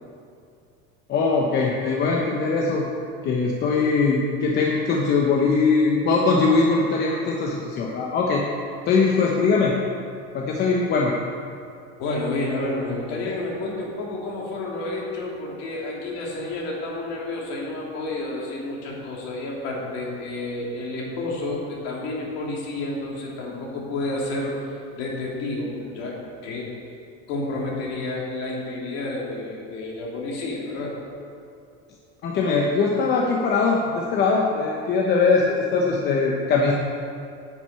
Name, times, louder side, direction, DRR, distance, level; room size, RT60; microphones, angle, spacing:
voice 1, 1.1-2.8 3.2-8.4 8.9-9.8 10.3-11.1 32.2-36.7, left 4 dB, 30° left, -1 dB, 0.9 m, -21 dB
voice 2, 12.0-26.7 27.3-31.0, left 2 dB, 50° left, -3 dB, 2.9 m, -30 dB
10.0 x 6.3 x 8.1 m, 2.4 s
cardioid pair, 165°, 32 cm